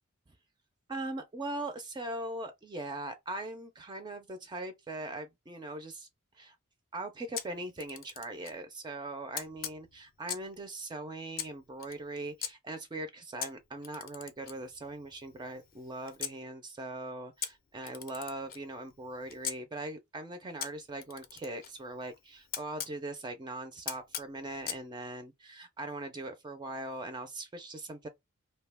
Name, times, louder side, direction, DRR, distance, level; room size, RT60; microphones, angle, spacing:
voice 1, 0.9-6.1 6.3-6.6 6.9-28.1, right 2 dB, 20° right, 0.4 m, -40 dB
Camera, 7.3-8.6 9.3-10.6 11.3-12.5 13.4-16.4 17.4-19.6 20.6-23.0 23.9-24.8, left 8 dB, 45° left, 0.5 m, -42 dB
2.7 x 2.1 x 3.3 m
head